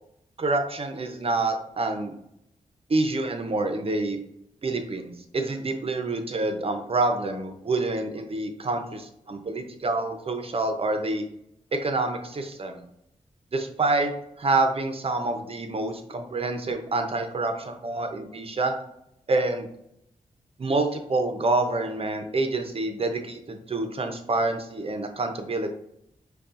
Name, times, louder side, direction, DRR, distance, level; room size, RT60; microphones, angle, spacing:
voice 1, 0.4-2.1 2.9-4.2 4.6-11.2 11.8-12.8 13.5-14.1 14.4-18.7 19.3-19.7 20.6-25.8, right 2 dB, 45° right, 5 dB, 0.7 m, -27 dB
5.2 x 2.3 x 2.5 m, 0.77 s
cardioid pair, 55°, 14 cm